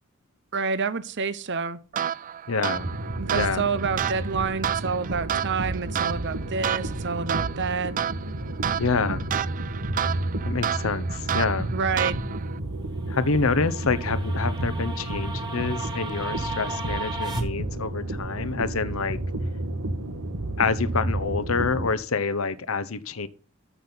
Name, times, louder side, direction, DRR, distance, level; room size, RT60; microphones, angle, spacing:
voice 1, 0.5-1.8 3.2-8.0 11.7-12.2, right 5 dB, 55° right, 0.8 m, -28 dB
sound 1, 1.9-12.6, right 9 dB, 40° right, 0.4 m, -31 dB
voice 2, 2.5-2.9 3.3-3.7 8.8-9.3 10.4-11.7 13.1-19.2 20.6-23.3, left 4 dB, 70° left, 0.9 m, -27 dB
sound 2, 2.7-21.9, right 1 dB, 85° right, 1.5 m, -31 dB
sound 3, 13.0-17.4, right 3 dB, 20° right, 1.9 m, -35 dB
14.0 x 6.2 x 3.9 m
head